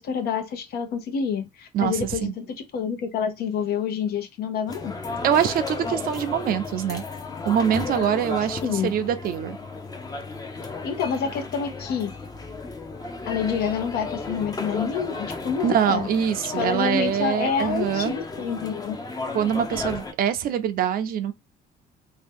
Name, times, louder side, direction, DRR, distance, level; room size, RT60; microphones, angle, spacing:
voice 1, 0.0-4.9 8.6-8.9 10.8-12.1 13.3-16.1 16.6-19.0, left 7 dB, 65° left, 0.9 m, -27 dB
voice 2, 1.7-2.3 5.2-7.0 7.5-9.6 15.6-18.1 19.3-21.3, right 9 dB, 60° right, 0.5 m, -24 dB
sound 1, 4.7-20.1, left 3 dB, 20° left, 0.7 m, -34 dB
2.8 x 2.3 x 3.5 m
cardioid pair, 110°, 17 cm